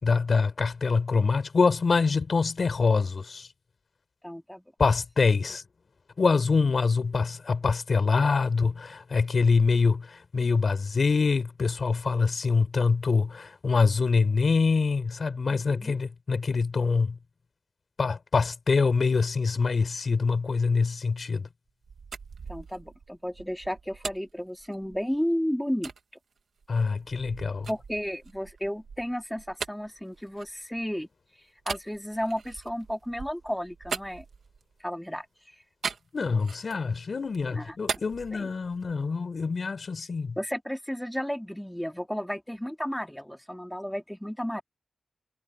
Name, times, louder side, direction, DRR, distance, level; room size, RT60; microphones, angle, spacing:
voice 1, 0.0-3.5 4.8-5.6 6.2-17.2 18.0-21.5 26.7-27.7 36.1-40.4, left 4 dB, 60° left, 4.6 m, -25 dB
voice 2, 4.2-4.6 15.5-15.9 22.5-25.9 27.7-31.1 31.7-34.2 34.8-35.3 37.6-37.7 38.3-38.5 40.4-44.6, equal, 5° left, 2.7 m, -33 dB
sound 1, 21.7-25.2 25.8-26.0 26.6-31.0 31.6-34.8 35.8-36.9 37.3-39.0, right 5 dB, 80° right, 2.2 m, -40 dB
cardioid pair, 70°, 0 cm